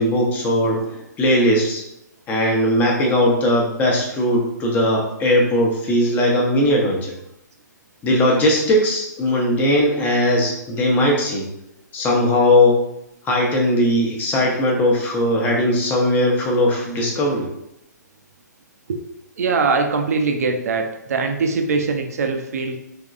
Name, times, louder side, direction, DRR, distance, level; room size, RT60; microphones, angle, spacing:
voice 1, 0.0-1.8 2.3-7.1 8.0-11.5 11.9-12.8 13.2-17.4, left 1 dB, 20° left, -1 dB, 0.8 m, -19 dB
voice 2, 19.4-22.8, right 4 dB, 55° right, 5 dB, 0.5 m, -22 dB
3.6 x 3.0 x 2.4 m, 0.82 s
figure-of-eight pair, 120°, 10 cm